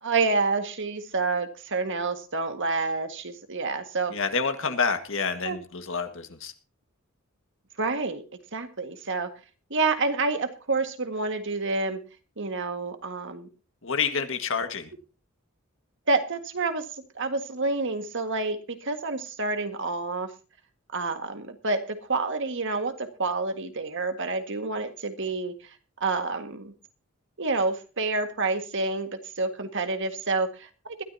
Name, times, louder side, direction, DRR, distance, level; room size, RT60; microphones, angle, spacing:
voice 1, 0.0-4.1 5.4-5.6 7.8-8.2 8.5-9.3 9.7-12.0 12.4-13.5 16.1-16.8 17.2-20.3 20.9-25.5 26.0-26.7 27.4-31.0, right 3 dB, 65° right, 7 dB, 1.8 m, -28 dB
voice 2, 4.1-6.5 13.8-14.9, left 5 dB, 65° left, 8 dB, 1.8 m, -28 dB
21.0 x 12.5 x 2.8 m, 0.34 s
head